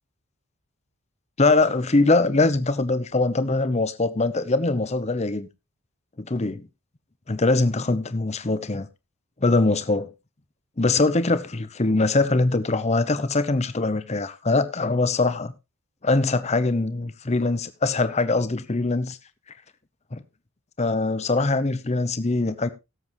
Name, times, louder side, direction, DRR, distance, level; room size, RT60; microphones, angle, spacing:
voice 1, 1.4-5.5 6.2-6.7 7.3-8.9 9.4-10.1 10.8-15.5 16.0-19.2 20.1-20.2 20.8-22.7, left 3 dB, 30° left, 0.7 m, -22 dB
17.0 x 7.8 x 3.0 m
head